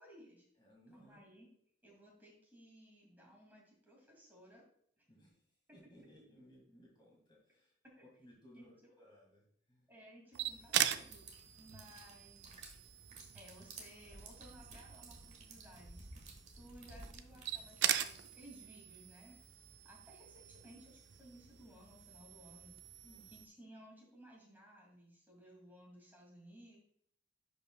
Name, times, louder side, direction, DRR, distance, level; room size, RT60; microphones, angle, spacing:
voice 1, 0.0-0.4 0.9-1.5 1.8-4.6 5.7-5.8 7.8-8.0 8.5-8.9 9.9-11.3 11.6-12.7 13.3-16.1 16.5-19.4 19.8-22.7 23.3-26.8, right 1 dB, 10° right, -3 dB, 2.4 m, -59 dB
voice 2, 0.6-1.2 5.1-5.4 5.7-7.7 8.2-9.9 23.0-23.3, equal, 25° left, -2 dB, 1.9 m, -62 dB
sound 1, 10.3-23.5, right 10 dB, 65° right, 0.4 m, -42 dB
sound 2, 10.9-18.4, right 3 dB, 40° right, 1.4 m, -55 dB
10.5 x 5.2 x 2.3 m, 0.65 s
head